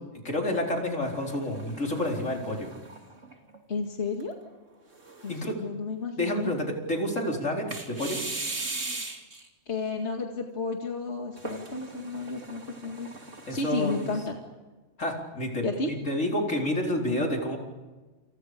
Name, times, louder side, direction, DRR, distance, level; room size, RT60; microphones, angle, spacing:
voice 1, 0.1-2.7 5.3-5.6 6.2-8.2 13.5-14.1 15.0-17.6, left 1 dB, 85° left, 1 dB, 4.8 m, -29 dB
sound 1, 1.0-3.6 4.1-4.2 4.9-5.6 7.7-9.5 11.4-14.2, right 3 dB, 80° right, 3.3 m, -39 dB
voice 2, 3.7-4.4 5.2-6.5 9.7-13.1 13.5-14.4 15.6-15.9, left 3 dB, 60° left, 2 dB, 2.3 m, -32 dB
29.0 x 28.5 x 5.2 m, 1.2 s
omnidirectional pair, 1.3 m